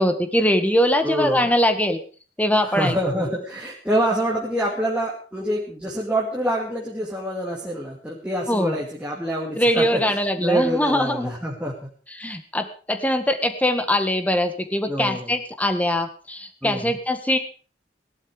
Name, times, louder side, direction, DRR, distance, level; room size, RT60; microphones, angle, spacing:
voice 1, 0.0-2.0 2.4-3.0 8.5-8.8 9.6-11.3 12.2-17.4, left 1 dB, 10° left, 7 dB, 1.7 m, -22 dB
voice 2, 1.0-1.5 2.6-11.9 14.9-15.3 16.6-17.0, right 1 dB, 5° right, -3 dB, 2.5 m, -26 dB
18.5 x 11.5 x 5.1 m, 0.40 s
head